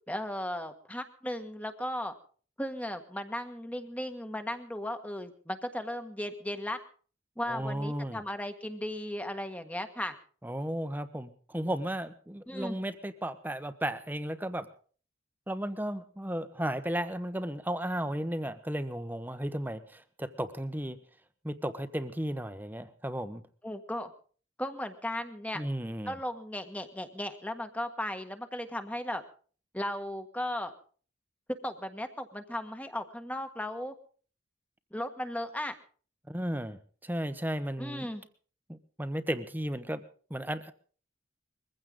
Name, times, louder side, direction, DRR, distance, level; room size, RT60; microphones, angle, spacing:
voice 1, 0.1-2.1 2.6-6.8 7.4-10.2 12.5-12.8 23.6-24.1 24.6-25.6 26.0-29.2 29.7-30.7 31.6-33.9 34.9-35.7 37.8-38.2, left 1 dB, 5° left, 8 dB, 1.5 m, -36 dB
voice 2, 7.5-8.2 10.4-14.7 15.5-21.0 21.4-23.4 25.5-26.2 36.3-38.1 38.7-40.0 40.3-40.7, right 1 dB, 10° right, 11 dB, 1.2 m, -34 dB
22.0 x 15.5 x 3.9 m, 0.42 s
head